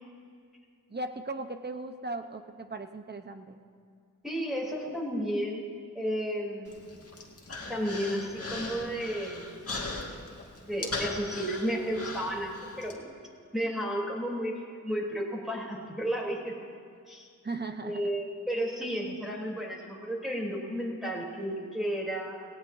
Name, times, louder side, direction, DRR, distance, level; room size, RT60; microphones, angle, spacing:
voice 1, 0.9-3.6 17.4-18.0, right 2 dB, 30° right, 7 dB, 0.9 m, -37 dB
voice 2, 4.2-5.7 5.9-6.9 7.7-9.6 10.7-13.1 13.5-16.5 17.1-17.3 17.8-22.3, equal, ahead, -4 dB, 3.4 m, -33 dB
Human voice, 6.7-12.9, left 2 dB, 45° left, 1.9 m, -39 dB
18.0 x 17.5 x 2.7 m, 2.2 s
wide cardioid pair, 80°, 33 cm